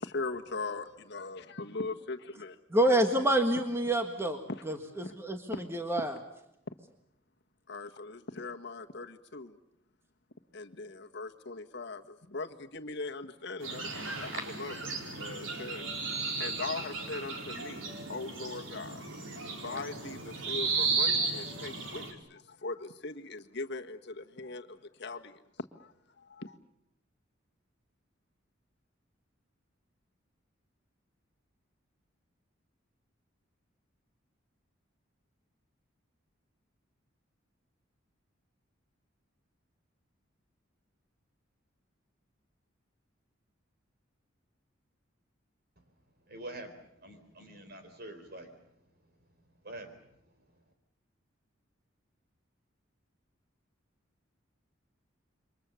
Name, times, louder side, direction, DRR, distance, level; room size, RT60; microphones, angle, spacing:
voice 1, 0.0-2.6 4.5-4.6 5.0-5.2 5.5-5.6 7.7-9.6 10.5-15.9 16.4-19.0 19.6-25.9 26.2-26.6, left 3 dB, 60° left, 5 dB, 1.5 m, -40 dB
voice 2, 2.7-6.1, right 1 dB, 15° right, 5 dB, 1.7 m, -28 dB
sound 1, 13.6-22.1, right 4 dB, 80° right, 4.2 m, -34 dB
voice 3, 46.3-48.5 49.6-50.0, right 1 dB, 50° right, 7 dB, 4.1 m, -45 dB
28.5 x 24.0 x 7.0 m, 0.77 s
head